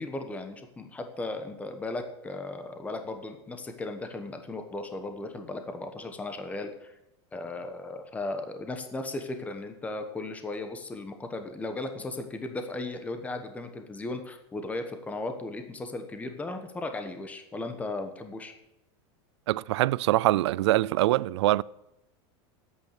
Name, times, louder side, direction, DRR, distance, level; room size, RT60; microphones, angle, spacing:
voice 1, 0.0-6.9 7.3-18.5, left 2 dB, 10° left, 1.1 m, -36 dB
voice 2, 19.5-21.6, right 16 dB, 85° right, 0.4 m, -24 dB
10.5 x 8.5 x 6.5 m
supercardioid pair, 150°, 14 cm